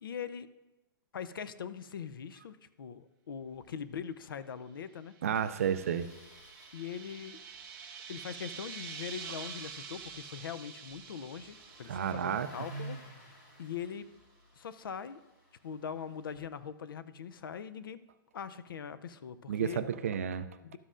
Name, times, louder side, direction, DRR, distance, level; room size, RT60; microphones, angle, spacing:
voice 1, 0.0-0.5 1.1-5.1 6.7-7.4 8.1-14.1 14.5-15.2 15.6-18.0 18.3-19.8 20.6-20.8, left 7 dB, 75° left, 14 dB, 0.5 m, -42 dB
Engine starting, 3.4-3.7 3.9-4.0 4.3-4.4 5.3-16.4, right 1 dB, 45° left, 1.7 m, -53 dB
sound 1, 5.1-13.4, right 6 dB, 15° right, 0.8 m, -47 dB
voice 2, 5.2-6.1 11.9-12.5 19.5-20.5, right 8 dB, 40° right, 12 dB, 0.4 m, -31 dB
12.5 x 7.5 x 2.5 m, 1.0 s
hypercardioid pair, 180°, 12 cm